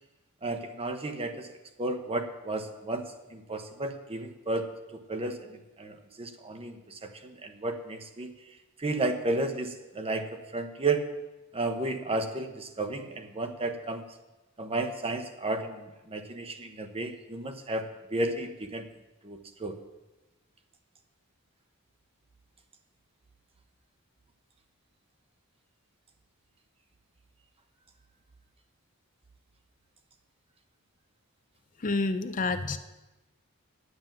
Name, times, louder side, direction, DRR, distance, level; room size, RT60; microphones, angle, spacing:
voice 1, 0.4-8.3 8.8-11.1 11.5-14.0 14.6-18.9 19.2-19.8, right 2 dB, 25° right, 6 dB, 1.0 m, -33 dB
voice 2, 31.8-32.8, left 3 dB, 35° left, 10 dB, 0.6 m, -28 dB
9.6 x 7.4 x 9.2 m, 1.1 s
head